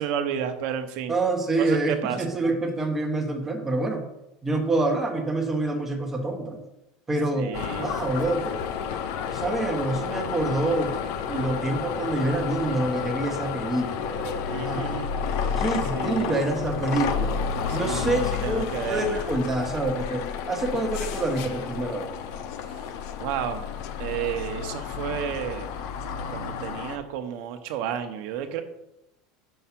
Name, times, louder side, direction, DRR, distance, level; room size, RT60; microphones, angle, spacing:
voice 1, 0.0-1.1 1.6-2.2 7.4-8.0 14.5-15.1 15.4-15.5 15.9-16.4 17.7-19.2 23.2-23.7 24.0-25.7 26.3-28.6, right 9 dB, 50° right, 7 dB, 0.7 m, -31 dB
voice 2, 1.1-4.0 4.4-6.6 7.1-8.6 9.2-10.9 11.3-14.9 15.6-17.3 17.7-22.1, right 2 dB, 10° right, 4 dB, 0.8 m, -27 dB
sound 1, 7.5-27.0, left 7 dB, 60° left, 0.6 m, -31 dB
5.6 x 4.6 x 5.9 m, 0.89 s
cardioid pair, 175°, 3 cm